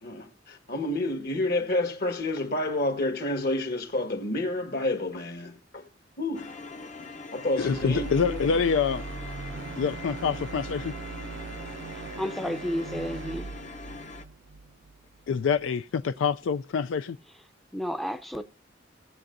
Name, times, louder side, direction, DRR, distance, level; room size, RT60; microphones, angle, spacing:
voice 1, 0.0-5.9 6.2-6.5 7.3-8.4, left 1 dB, 55° left, 1.6 m, -29 dB
sound 1, 6.3-14.2, left 4 dB, 40° left, 0.8 m, -43 dB
voice 2, 7.6-9.0 9.8-10.9 15.3-17.2, left 6 dB, 85° left, 0.4 m, -26 dB
sound 2, 7.6-15.7, right 4 dB, 75° right, 0.5 m, -40 dB
voice 3, 11.9-13.5 17.7-18.4, equal, ahead, 0.6 m, -32 dB
18.0 x 7.7 x 2.6 m
head